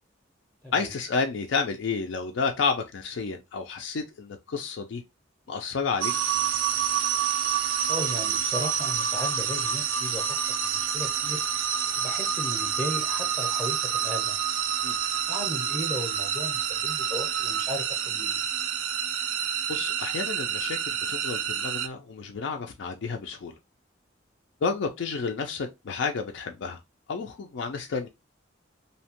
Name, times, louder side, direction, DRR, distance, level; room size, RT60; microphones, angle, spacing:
voice 1, 0.7-5.0 5.5-6.1 14.8-15.0 19.7-23.5 24.6-26.8 27.1-28.1, left 5 dB, 65° left, 0.4 m, -30 dB
sound 1, 6.0-21.9, right 8 dB, 85° right, 0.4 m, -28 dB
voice 2, 7.9-10.2 10.6-11.4 12.0-14.4 15.2-18.4, equal, 5° left, 0.6 m, -36 dB
2.7 x 2.1 x 2.8 m
head